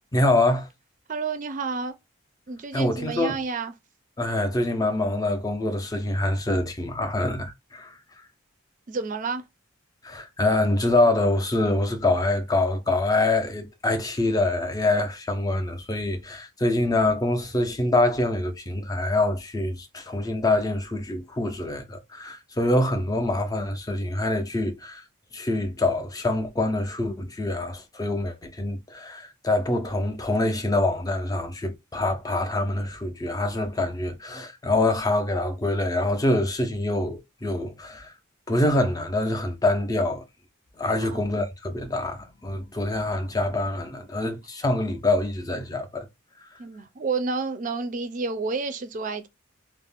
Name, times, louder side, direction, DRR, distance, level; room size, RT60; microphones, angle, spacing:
voice 1, 0.1-0.7 2.7-3.4 4.2-8.0 10.0-25.0 25.3-38.1 38.5-40.2 40.8-46.1, left 2 dB, 20° left, 0.5 m, -25 dB
voice 2, 1.1-1.9 2.5-3.7 8.9-9.4 40.9-41.3 46.6-49.3, right 4 dB, 40° right, 0.4 m, -30 dB
2.4 x 2.0 x 3.4 m
head